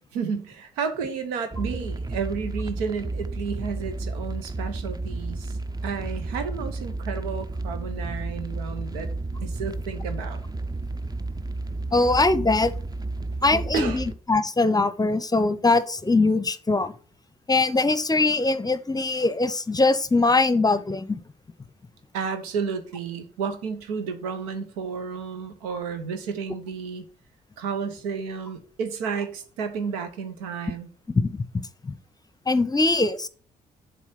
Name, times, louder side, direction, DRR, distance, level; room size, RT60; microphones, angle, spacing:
voice 1, 0.1-5.6 5.8-9.1 9.4-10.4 13.3-14.0 22.1-27.0 27.6-30.9, right 6 dB, 85° right, 8 dB, 1.0 m, -32 dB
sound 1, 1.5-14.1, right 2 dB, 20° right, 0.7 m, -32 dB
voice 2, 11.9-12.7 13.4-16.9 17.5-21.2 31.3-31.4 31.8-31.9 32.5-33.3, left 3 dB, 20° left, 15 dB, 0.8 m, -22 dB
7.3 x 4.2 x 5.8 m, 0.42 s
hypercardioid pair, 45°, 19 cm